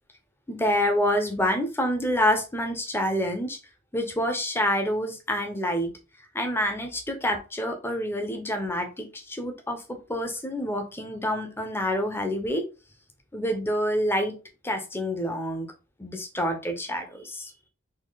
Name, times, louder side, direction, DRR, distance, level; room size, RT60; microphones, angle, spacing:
voice 1, 0.5-3.6 3.9-5.9 6.3-12.6 13.3-14.4 14.6-15.7 16.0-17.5, equal, 10° left, 4 dB, 0.8 m, -27 dB
4.3 x 2.7 x 3.9 m, 0.31 s
head